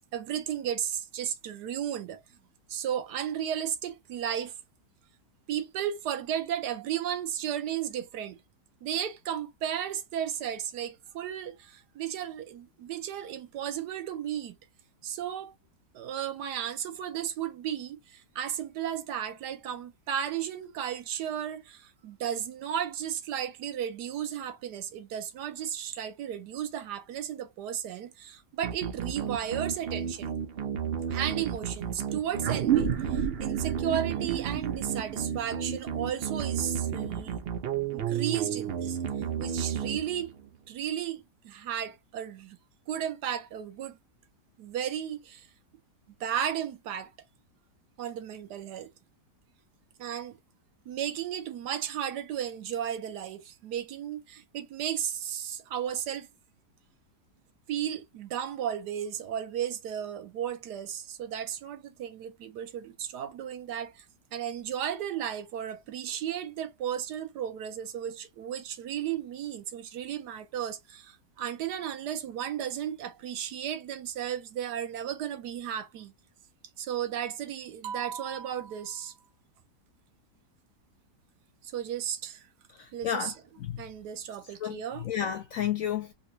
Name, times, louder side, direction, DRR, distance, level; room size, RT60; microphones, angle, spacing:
voice 1, 0.1-2.4 2.7-4.5 5.5-8.4 8.8-14.6 15.0-15.5 15.9-30.3 31.1-37.4 37.9-39.0 39.4-40.3 40.7-42.6 42.9-44.0 44.6-45.5 46.2-47.1 48.0-48.9 50.0-50.4 50.9-56.3 57.7-64.0 64.3-76.1 76.8-79.2 81.6-82.4 82.9-83.3 83.8-85.0, right 9 dB, 70° right, 1.2 m, -34 dB
sound 1, 28.6-40.5, right 8 dB, 90° right, 0.5 m, -33 dB
sound 2, 32.4-37.3, right 10 dB, 55° right, 0.7 m, -32 dB
voice 2, 82.7-83.8 84.4-86.1, left 9 dB, 75° left, 0.8 m, -32 dB
4.1 x 2.3 x 2.7 m
omnidirectional pair, 1.9 m